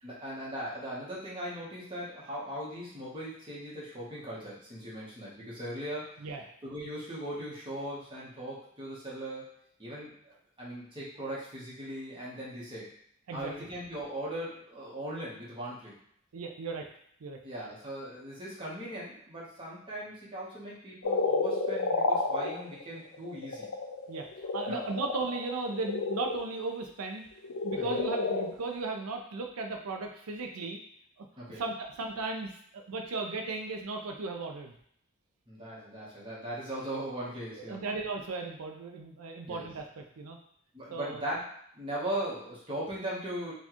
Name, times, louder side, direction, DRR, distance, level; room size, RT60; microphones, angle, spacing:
voice 1, 0.0-6.3 6.6-9.5 9.8-12.9 13.3-15.9 17.4-23.7 24.7-24.9 27.8-28.0 31.4-31.6 35.5-37.8 39.5-39.7 40.7-41.5 41.7-43.5, right 1 dB, 25° right, -6 dB, 1.0 m, -39 dB
voice 2, 16.3-16.9 17.2-17.4 24.1-27.3 27.6-30.8 31.2-31.3 31.6-34.7 37.5-40.4 40.9-41.2, right 3 dB, 85° right, 3 dB, 0.5 m, -36 dB
sound 1, 21.0-26.4 27.4-28.7, left 3 dB, 80° left, 0.5 m, -31 dB
4.3 x 2.3 x 2.9 m, 0.67 s
head